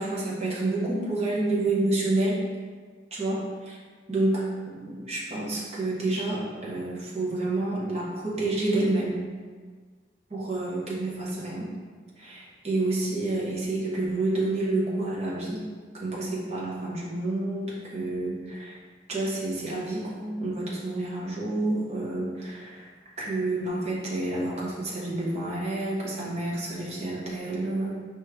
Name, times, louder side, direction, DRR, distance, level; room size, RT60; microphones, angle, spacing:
voice 1, 0.0-2.4 3.1-3.8 4.1-9.2 10.3-11.7 12.2-15.7 15.9-18.8 19.1-22.9 23.2-28.0, right 2 dB, 35° right, -6 dB, 0.9 m, -29 dB
5.0 x 3.1 x 3.4 m, 1.5 s
head